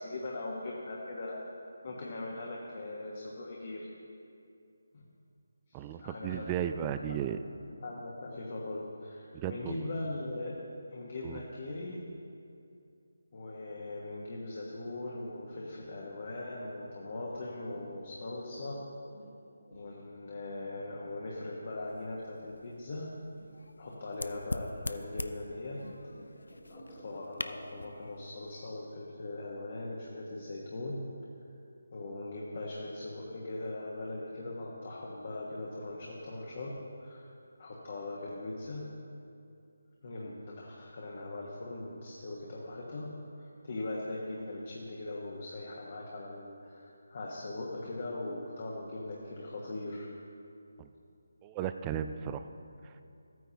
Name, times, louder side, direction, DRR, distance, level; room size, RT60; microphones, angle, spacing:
voice 1, 0.0-1.4 1.8-3.9 4.9-5.0 5.7-7.2 7.8-10.5 10.9-12.0 13.3-18.8 19.7-23.1 23.8-25.8 26.7-31.0 31.9-36.7 37.0-37.2 37.6-38.9 40.0-43.1 43.6-50.1, left 2 dB, 50° left, -4 dB, 1.3 m, -40 dB
voice 2, 5.7-7.4 9.3-9.9 11.2-11.4 50.8-50.9 51.4-52.4 52.8-52.9, right 9 dB, 20° right, 9 dB, 0.3 m, -35 dB
sound 1, 18.9-28.8 29.2-29.3, equal, 10° left, 1.5 m, -56 dB
sound 2, 21.8-28.7, left 1 dB, 85° left, 0.4 m, -43 dB
13.5 x 9.2 x 2.9 m, 2.5 s
figure-of-eight pair, 160°, 0 cm